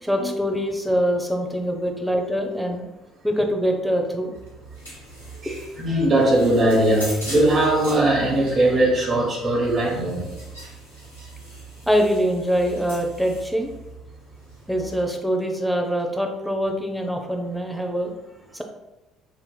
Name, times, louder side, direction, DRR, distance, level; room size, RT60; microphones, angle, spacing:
voice 1, 0.0-2.8 3.2-4.3 5.5-5.6 11.9-13.7 14.7-18.1 18.5-18.6, equal, ahead, 1 dB, 0.6 m, -24 dB
sound 1, 4.3-15.1, right 2 dB, 80° left, 0.9 m, -40 dB
voice 2, 5.8-10.3, right 1 dB, 35° right, -1 dB, 1.2 m, -20 dB
4.9 x 2.8 x 2.3 m, 0.99 s
figure-of-eight pair, 50°, 0 cm